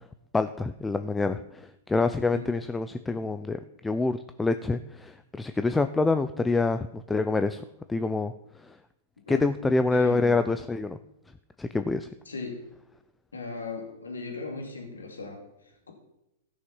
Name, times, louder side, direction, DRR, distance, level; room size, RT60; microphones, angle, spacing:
voice 1, 0.3-7.6 7.9-8.3 8.7-8.8 9.3-11.0 11.6-12.1, left 3 dB, 10° left, 10 dB, 0.5 m, -26 dB
voice 2, 9.9-10.4 12.3-12.7 13.3-15.9, left 3 dB, 85° left, 1 dB, 2.4 m, -38 dB
15.5 x 6.4 x 5.6 m, 0.88 s
hypercardioid pair, 105°, 0 cm